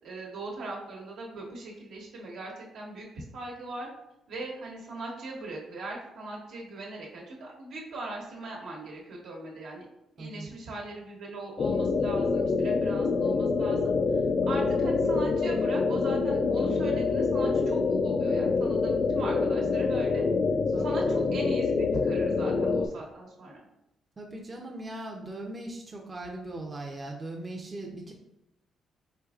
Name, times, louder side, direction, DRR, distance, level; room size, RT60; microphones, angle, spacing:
voice 1, 0.0-3.9 4.3-9.9 10.1-20.2 20.8-23.6, right 2 dB, 80° right, -3 dB, 1.2 m, -40 dB
sound 1, 11.6-22.9, left 4 dB, 50° left, 0.3 m, -26 dB
voice 2, 20.7-21.0 24.2-28.1, right 2 dB, 25° right, -1 dB, 0.6 m, -39 dB
4.5 x 3.5 x 2.4 m, 0.85 s
cardioid pair, 90°, 0 cm